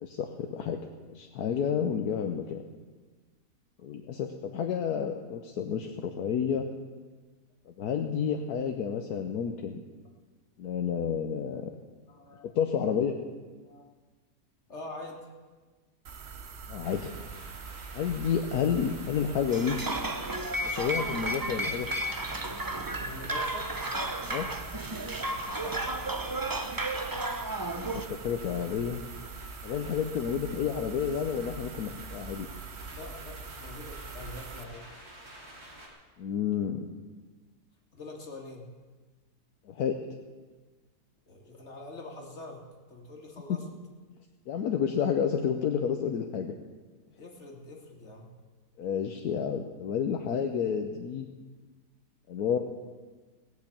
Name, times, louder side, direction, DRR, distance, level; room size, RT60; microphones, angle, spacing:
voice 1, 0.0-0.8 1.1-2.6 3.8-6.7 7.7-9.8 10.6-11.7 12.5-13.2 16.7-17.1 17.9-19.8 20.6-21.9 24.3-24.5 27.7-29.0 29.6-32.5 36.2-36.9 39.7-39.9 44.5-46.5 48.8-51.3 52.3-52.6, left 7 dB, 75° left, 4 dB, 1.4 m, -30 dB
voice 2, 12.1-12.5 13.6-13.9 14.7-15.3 23.0-23.7 25.6-25.7 32.9-34.9 37.9-38.7 41.3-42.6 42.9-43.6 47.2-48.3, left 2 dB, 45° left, 0 dB, 2.5 m, -44 dB
sound 1, 16.0-34.6, right 5 dB, 50° right, 1.1 m, -44 dB
sound 2, 16.8-35.9, right 1 dB, 70° right, 3.5 m, -51 dB
sound 3, 19.5-28.1, right 1 dB, 20° right, 0.6 m, -33 dB
19.0 x 6.4 x 8.5 m, 1.4 s
omnidirectional pair, 1.7 m